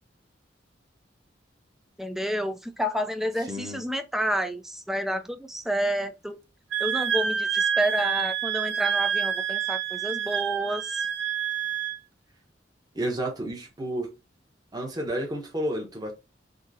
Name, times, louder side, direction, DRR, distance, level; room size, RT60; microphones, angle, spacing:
voice 1, 2.0-6.4 6.8-11.1, equal, ahead, 0.4 m, -29 dB
voice 2, 3.5-3.8 12.9-14.2 14.7-16.1, right 1 dB, 20° right, 1.0 m, -31 dB
Wind instrument woodwind instrument, 6.7-12.0, right 8 dB, 70° right, 0.5 m, -28 dB
3.7 x 2.8 x 2.7 m
head